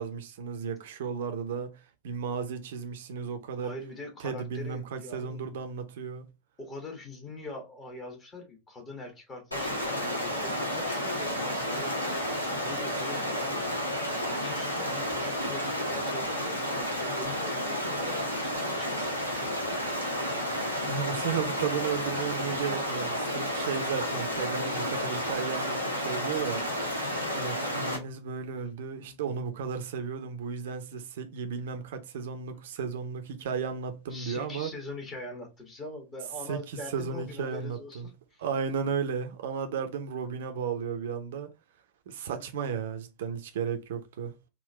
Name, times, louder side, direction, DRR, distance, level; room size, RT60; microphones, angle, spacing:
voice 1, 0.0-1.8 2.0-3.7 4.2-6.3 20.8-34.7 36.5-38.1 38.4-41.5 42.1-44.3, right 6 dB, 55° right, 0.7 m, -34 dB
voice 2, 3.6-5.4 6.6-14.0 14.3-19.6 29.0-29.2 32.5-32.6 34.1-38.4, left 2 dB, 25° left, 1.3 m, -43 dB
Stream, 9.5-28.0, equal, 85° left, 1.2 m, -31 dB
3.8 x 2.5 x 3.2 m
figure-of-eight pair, 90°, 0 cm